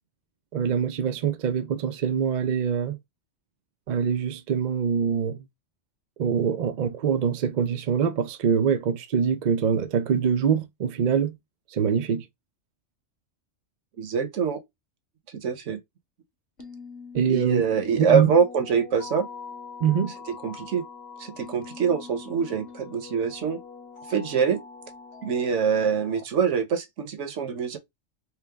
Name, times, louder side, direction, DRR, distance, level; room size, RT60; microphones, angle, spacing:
voice 1, 0.5-3.0 3.9-5.5 6.2-11.4 11.7-12.2 17.1-17.6 18.0-18.3 19.8-20.1, right 7 dB, 55° right, 0.5 m, -24 dB
voice 2, 14.0-14.6 15.3-15.8 17.3-19.3 20.3-20.8 21.2-23.6 24.1-24.6 25.2-27.8, right 6 dB, 75° right, 1.2 m, -24 dB
sound 1, 16.6-26.2, left 5 dB, 55° left, 2.0 m, -43 dB
4.6 x 2.1 x 3.4 m
omnidirectional pair, 1.3 m